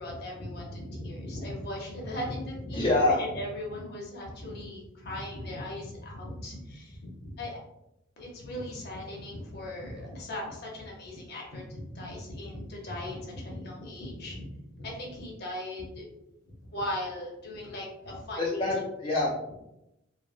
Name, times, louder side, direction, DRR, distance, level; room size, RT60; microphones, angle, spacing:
voice 1, 0.0-7.6 8.2-14.4 14.7-16.1 16.7-18.8, left 1 dB, 55° left, -2 dB, 0.8 m, -38 dB
voice 2, 2.7-3.2 18.4-19.5, left 2 dB, 30° left, -6 dB, 0.4 m, -26 dB
3.3 x 2.1 x 2.5 m, 0.87 s
head